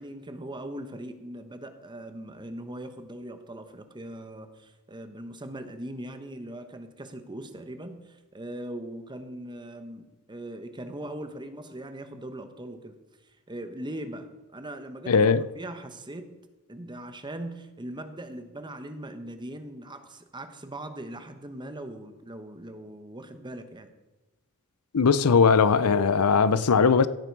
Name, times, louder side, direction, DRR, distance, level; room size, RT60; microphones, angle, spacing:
voice 1, 0.0-13.0 13.5-15.2 15.5-16.3 16.7-23.9, right 1 dB, 20° right, 1.1 m, -40 dB
voice 2, 15.1-15.4 24.9-27.1, left 5 dB, 80° left, 0.6 m, -19 dB
16.0 x 9.0 x 4.7 m
head